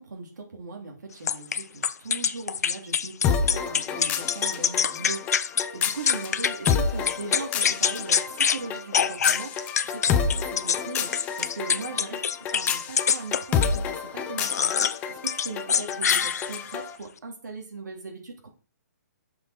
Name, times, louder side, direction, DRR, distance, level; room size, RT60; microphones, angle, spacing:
voice 1, 0.0-12.2 12.5-18.5, right 3 dB, 85° right, 1 dB, 3.2 m, -39 dB
sound 1, 1.3-6.8 7.1-8.6 8.9-13.8 14.4-15.0 15.3-16.7, left 7 dB, 65° left, 0.7 m, -25 dB
sound 2, 3.2-17.0, left 6 dB, 15° left, 0.7 m, -30 dB
10.5 x 6.5 x 4.3 m, 0.36 s
hypercardioid pair, 160°, 9 cm